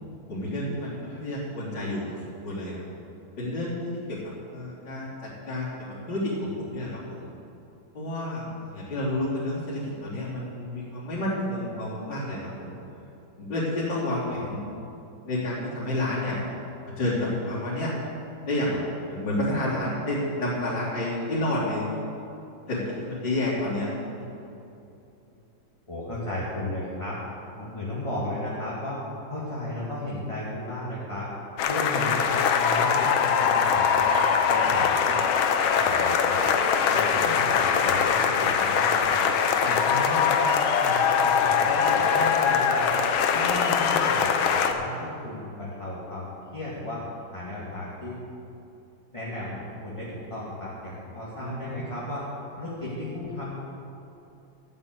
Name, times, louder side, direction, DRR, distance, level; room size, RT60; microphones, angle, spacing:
voice 1, 0.3-2.0 2.4-2.8 3.4-4.2 4.5-5.1 5.5-5.7 6.1-7.0 7.9-12.7 13.4-14.6 15.3-16.4 17.0-17.9 18.5-18.8 19.1-21.9 22.7-23.9 24.2-24.3 37.2-37.3 51.4-52.0, left 1 dB, 60° left, -12 dB, 4.2 m, -29 dB
voice 2, 25.9-27.2 27.5-31.3 31.7-34.1 34.5-34.9 35.7-36.4 36.9-39.3 39.6-40.5 40.8-43.0 43.3-47.0 47.3-48.2 49.1-52.3 52.6-53.7, left 1 dB, 15° left, -7 dB, 2.1 m, -34 dB
sound 1, 31.6-44.7, left 6 dB, 85° left, 1.7 m, -22 dB
12.5 x 8.8 x 8.3 m, 2.8 s
omnidirectional pair, 2.2 m